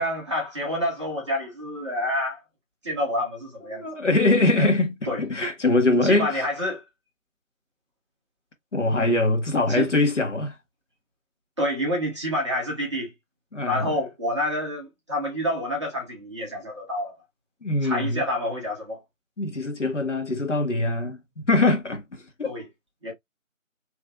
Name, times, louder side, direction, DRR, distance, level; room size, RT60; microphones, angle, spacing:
voice 1, 0.0-2.4 2.8-3.9 4.6-4.7 5.1-5.2 6.0-6.8 9.0-9.1 9.7-9.9 11.6-13.1 13.7-17.2 17.8-19.0 22.4-22.7 23.0-23.1, left 1 dB, 20° right, 1.1 m, -28 dB
voice 2, 3.6-6.5 8.7-10.6 13.5-14.0 17.6-18.2 19.4-22.5, left 2 dB, 60° left, 1.3 m, -23 dB
3.7 x 3.1 x 2.5 m
figure-of-eight pair, 160°, 41 cm